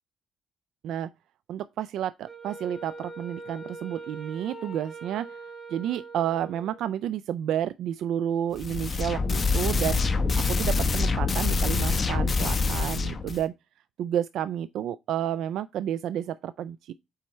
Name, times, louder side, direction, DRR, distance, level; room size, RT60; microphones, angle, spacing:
voice 1, 1.5-5.4 5.7-10.0 10.3-13.5 14.0-16.9, right 10 dB, 80° right, 0.3 m, -30 dB
Wind instrument woodwind instrument, 2.3-6.9, right 3 dB, 5° left, 4.1 m, -42 dB
sound 1, 8.5-13.4, left 4 dB, 35° left, 1.0 m, -25 dB
8.4 x 4.3 x 3.1 m
cardioid pair, 90°, 0 cm